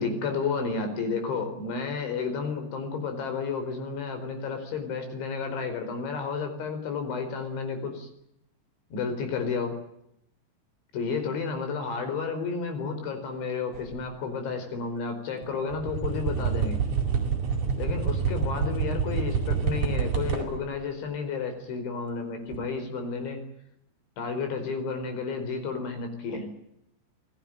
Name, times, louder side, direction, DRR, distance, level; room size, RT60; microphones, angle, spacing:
voice 1, 0.0-8.1 8.9-9.8 10.9-16.8 17.8-23.4 24.2-26.5, left 5 dB, 85° left, 7 dB, 7.1 m, -31 dB
sound 1, 13.7-14.0 15.4-15.5 15.7-20.7 22.5-22.6, right 6 dB, 45° right, 6.0 m, -27 dB
28.5 x 18.0 x 9.0 m, 0.77 s
omnidirectional pair, 5.2 m